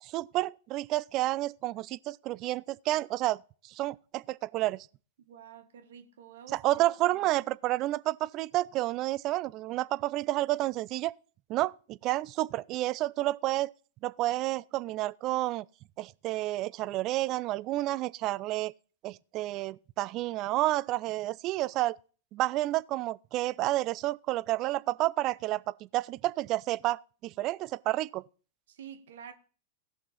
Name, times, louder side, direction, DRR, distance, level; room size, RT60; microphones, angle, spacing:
voice 1, 0.0-3.4 3.6-4.9 6.5-11.1 11.5-13.7 14.0-15.7 16.0-18.7 19.0-22.0 22.3-28.2, right 16 dB, 40° right, 0.4 m, -30 dB
voice 2, 5.2-6.8 28.7-29.3, right 8 dB, 70° right, 1.5 m, -48 dB
17.0 x 5.8 x 4.2 m
hypercardioid pair, 100°, 0 cm